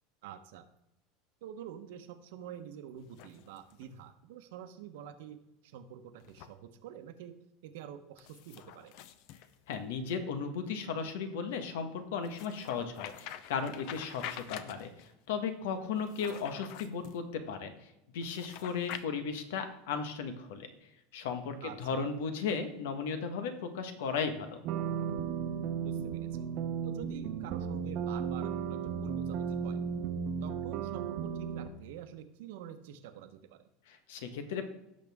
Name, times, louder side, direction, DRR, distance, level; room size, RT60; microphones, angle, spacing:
voice 1, 0.2-0.7 1.4-7.3 7.6-8.9 21.6-22.1 25.8-26.5 26.8-29.8 30.4-33.7, right 9 dB, 75° right, 8 dB, 1.1 m, -47 dB
sound 1, 3.0-4.0 6.2-6.5 8.2-10.1 12.2-15.1 16.0-17.2 18.2-19.0, left 11 dB, 55° left, 0.7 m, -47 dB
voice 2, 9.7-14.9 15.3-20.7 21.1-24.6 33.9-34.6, left 6 dB, 85° left, 8 dB, 1.5 m, -36 dB
sound 2, 24.6-31.7, right 7 dB, 45° right, 0.9 m, -35 dB
17.0 x 6.6 x 3.6 m, 0.90 s
supercardioid pair, 160°, 0 cm